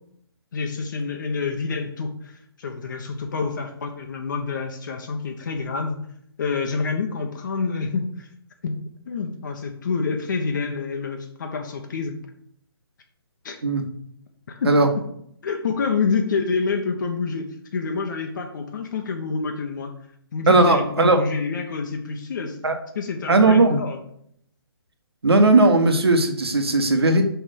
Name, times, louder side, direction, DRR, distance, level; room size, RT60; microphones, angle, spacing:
voice 1, 0.5-6.0 6.4-8.3 8.6-12.2 13.4-13.6 14.5-14.8 15.4-20.0 20.3-22.6 22.9-24.0, left 4 dB, 50° left, 3 dB, 1.1 m, -27 dB
voice 2, 20.5-21.2 22.6-22.8 23.3-23.8 25.2-27.2, right 2 dB, 75° right, 6 dB, 1.4 m, -17 dB
5.8 x 4.6 x 6.5 m, 0.69 s
figure-of-eight pair, 145°, 13 cm